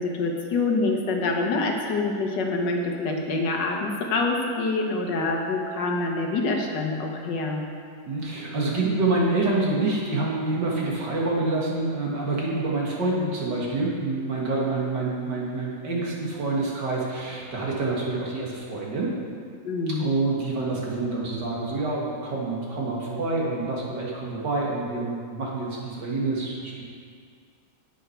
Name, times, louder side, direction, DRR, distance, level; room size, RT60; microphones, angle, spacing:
voice 1, 0.0-7.7 19.6-20.1, left 3 dB, 70° left, 1 dB, 1.6 m, -26 dB
voice 2, 8.1-19.1 20.0-26.8, right 2 dB, 65° right, -4 dB, 2.4 m, -27 dB
9.9 x 8.7 x 4.6 m, 2.1 s
omnidirectional pair, 2.1 m